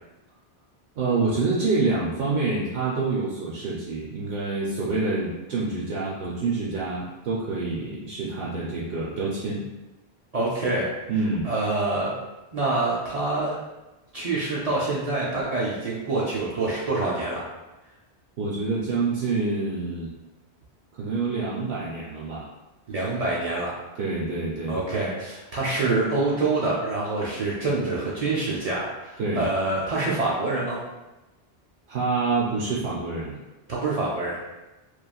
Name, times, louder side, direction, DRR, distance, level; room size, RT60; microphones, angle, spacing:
voice 1, 1.0-9.6 11.1-11.5 18.4-20.1 21.0-22.5 24.0-24.8 29.2-29.5 31.9-33.4, right 3 dB, 75° right, -6 dB, 0.8 m, -27 dB
voice 2, 10.3-10.9 11.4-12.1 12.5-13.6 14.1-17.4 22.9-23.7 24.7-30.8 33.7-34.4, right 2 dB, 55° right, -6 dB, 0.4 m, -26 dB
3.0 x 2.4 x 2.3 m, 1.0 s
omnidirectional pair, 1.1 m